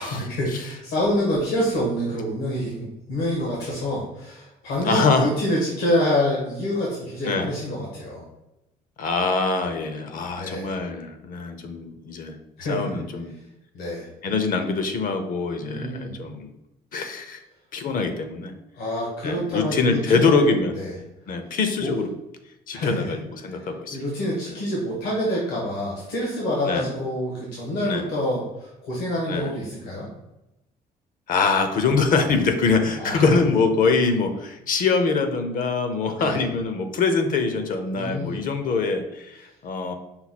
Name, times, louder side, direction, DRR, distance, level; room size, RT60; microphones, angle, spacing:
voice 1, 0.0-8.2 10.4-10.7 12.6-12.9 13.7-14.1 15.6-16.1 18.8-20.5 20.7-20.9 21.8-22.0 22.7-23.1 23.5-23.6 23.9-30.1 33.0-33.4 36.2-36.4 37.9-38.4, equal, 85° left, -4 dB, 1.4 m, -27 dB
voice 2, 4.8-5.3 7.2-7.5 9.0-12.4 12.7-13.3 14.2-16.5 16.9-17.4 17.7-18.5 19.2-20.8 21.3-22.1 22.7-24.0 26.7-26.9 27.8-28.1 29.3-29.5 31.3-39.9, left 4 dB, 55° left, 7 dB, 0.6 m, -24 dB
5.6 x 2.2 x 4.2 m, 0.92 s
cardioid pair, 110°, 17 cm